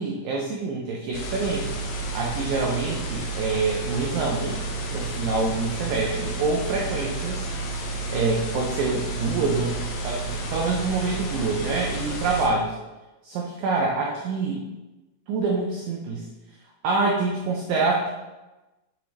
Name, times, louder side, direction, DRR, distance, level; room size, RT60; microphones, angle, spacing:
voice 1, 0.0-1.8 2.1-4.6 4.9-7.5 8.1-9.8 10.0-12.8 13.2-14.6 15.3-16.3 16.8-18.1, right 3 dB, 80° right, -1 dB, 2.0 m, -26 dB
sound 1, 1.1-12.5, right 2 dB, 70° left, 2.3 m, -31 dB
7.5 x 6.9 x 3.3 m, 1.1 s
omnidirectional pair, 5.0 m